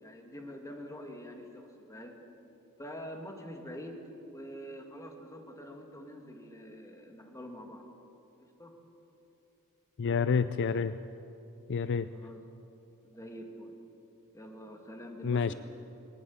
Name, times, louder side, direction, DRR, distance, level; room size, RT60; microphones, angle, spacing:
voice 1, 0.0-2.1 2.8-4.0 4.2-7.8 8.4-8.7 12.1-12.4 13.0-13.7 14.3-15.5, equal, 15° left, 3 dB, 2.0 m, -45 dB
voice 2, 10.0-10.9 11.7-12.1 15.2-15.5, left 5 dB, 55° left, 13 dB, 0.4 m, -28 dB
20.5 x 18.5 x 7.2 m, 2.9 s
head